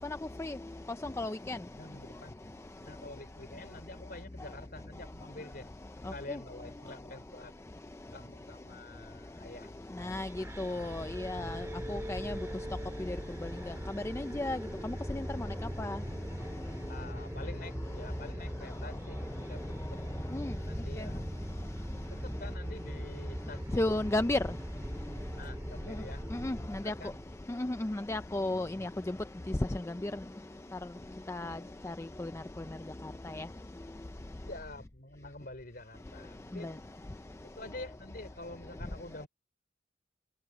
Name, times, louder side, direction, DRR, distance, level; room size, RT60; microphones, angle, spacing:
voice 1, 1.2-1.6 10.0-10.3 10.6-11.6 11.9-12.3 14.2-14.6 15.1-15.2 15.8-16.0 20.3-20.5 23.7-24.4 26.4-26.6 26.9-27.0 27.6-28.9 30.0-30.1 31.3-31.6 31.9-32.0 33.4-33.5, left 2 dB, 15° left, 0.4 m, -32 dB
voice 2, 1.8-2.4 2.8-5.7 6.0-7.5 8.1-9.7 16.9-19.2 19.5-19.8 20.7-21.4 22.1-24.2 25.3-26.5 26.8-27.2 31.0-31.2 31.4-31.7 34.5-36.8 37.4-39.3, left 2 dB, 50° left, 4.1 m, -47 dB
sound 1, 10.0-27.4, equal, 15° right, 2.8 m, -40 dB
head